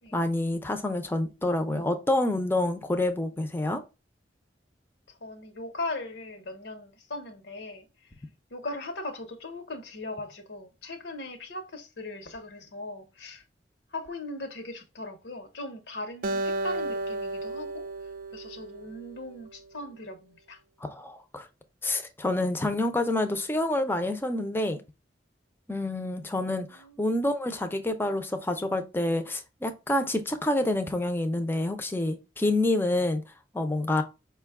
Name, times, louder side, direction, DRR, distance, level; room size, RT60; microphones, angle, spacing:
voice 1, 0.1-3.8 20.8-21.5 21.8-24.8 25.7-33.2 33.5-34.0, left 1 dB, 15° left, 0.5 m, -28 dB
voice 2, 5.1-8.2 8.5-13.4 13.9-17.9 18.3-20.6 26.4-27.0, left 2 dB, 85° left, 0.9 m, -39 dB
Acoustic guitar, 16.2-19.6, right 2 dB, 50° right, 0.3 m, -33 dB
5.1 x 2.3 x 3.5 m
head